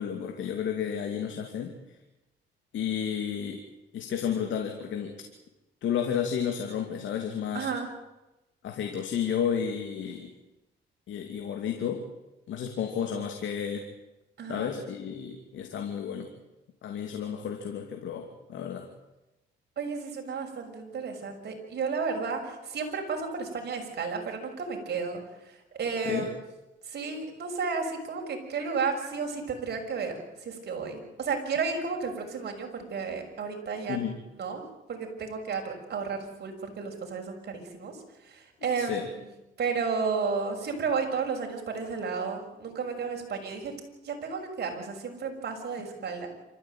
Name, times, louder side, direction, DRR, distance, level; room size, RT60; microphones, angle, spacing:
voice 1, 0.0-1.7 2.7-3.6 3.9-5.1 5.8-7.7 8.6-10.3 11.1-12.0 12.5-13.9 14.5-16.3 16.8-18.9 26.0-26.3 33.9-34.2 38.8-39.1, left 8 dB, 75° left, 4 dB, 2.8 m, -32 dB
voice 2, 7.5-7.9 14.4-14.7 19.8-25.2 25.7-26.3 26.9-30.1 30.4-34.1 34.3-38.0 38.2-39.3 39.6-46.3, right 5 dB, 55° right, 2 dB, 6.3 m, -32 dB
27.0 x 14.5 x 9.2 m, 1.0 s
cardioid pair, 90°, 20 cm